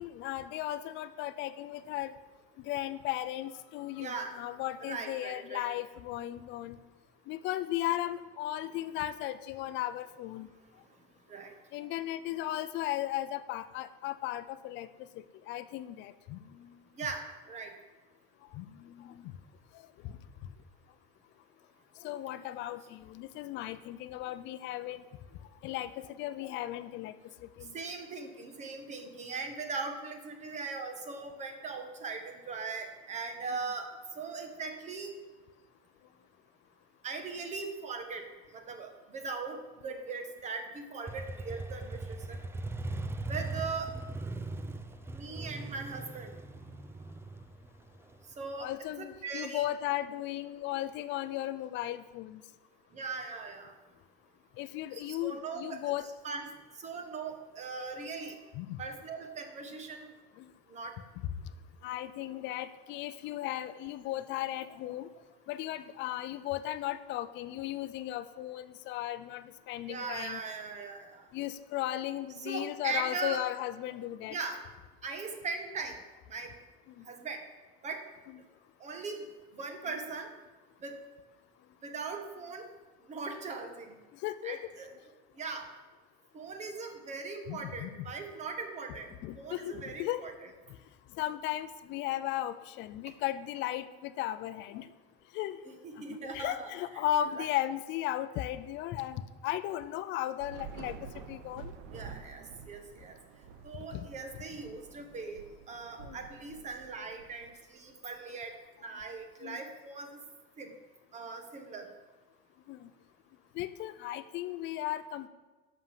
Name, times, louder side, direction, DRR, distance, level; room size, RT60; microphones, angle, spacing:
voice 1, 0.0-2.1 2.6-6.8 7.3-10.5 11.7-14.9 15.5-16.7 18.5-19.2 20.0-20.1 22.0-25.0 25.6-27.1 27.6-27.7 48.6-52.4 54.6-56.1 58.5-58.8 60.4-60.5 61.8-65.1 65.5-70.4 71.3-74.4 77.0-77.1 84.2-84.6 87.5-87.9 89.2-90.2 91.2-94.9 95.3-95.6 96.1-101.0 101.3-101.7 103.9-104.1 106.0-106.2 109.4-109.6 112.7-112.9 113.5-115.3, left 13 dB, 60° left, 12 dB, 0.7 m, -36 dB
voice 2, 4.0-4.4 4.8-5.6 11.3-11.5 17.0-17.7 27.7-33.9 34.1-35.1 37.0-38.3 38.5-42.4 43.3-43.9 45.1-46.3 48.4-48.7 49.0-49.6 52.9-53.7 54.9-55.9 56.2-56.5 56.8-58.4 58.8-60.1 60.7-61.0 69.9-71.3 72.4-73.4 74.3-74.6 75.0-76.0 76.3-76.5 77.0-77.4 77.8-78.0 78.8-79.3 79.5-80.3 80.8-81.0 81.8-82.7 83.1-84.0 84.4-84.9 85.4-85.7 86.3-90.3 95.8-97.0 97.4-97.5 101.9-103.2 103.6-110.2 110.6-110.7 111.1-111.9, right 4 dB, 35° right, 6 dB, 1.7 m, -40 dB
Motorcycle, 41.1-48.7, right 2 dB, 10° right, 0.6 m, -39 dB
Thunder / Rain, 100.4-107.9, right 6 dB, 70° right, 0.9 m, -49 dB
11.0 x 6.6 x 7.5 m, 1.2 s
cardioid pair, 135°, 21 cm